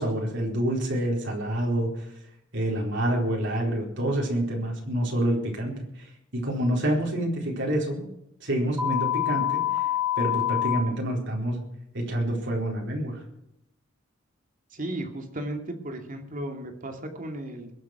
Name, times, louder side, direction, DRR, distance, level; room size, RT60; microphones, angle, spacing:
voice 1, 0.0-2.1 2.5-8.0 8.4-9.8 10.2-11.6 11.9-13.2, right 1 dB, 65° right, -1 dB, 4.2 m, -27 dB
sound 1, 8.8-10.8, left 12 dB, 10° right, 2.4 m, -26 dB
voice 2, 14.7-17.7, right 1 dB, 45° right, 4 dB, 2.5 m, -35 dB
22.0 x 8.2 x 6.0 m, 0.78 s
head